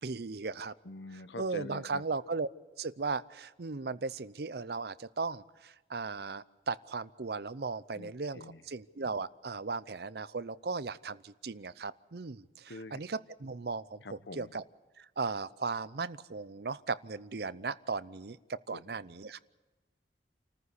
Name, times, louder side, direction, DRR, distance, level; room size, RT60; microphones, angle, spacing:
voice 1, 0.0-0.7 1.1-2.5 2.8-14.6 15.0-19.4, right 4 dB, 60° right, 16 dB, 0.6 m, -37 dB
voice 2, 0.8-2.0 8.0-8.6 12.7-13.0 14.0-14.5 18.7-18.8, left 2 dB, 80° left, 12 dB, 1.1 m, -45 dB
28.5 x 14.5 x 8.3 m, 1.1 s
head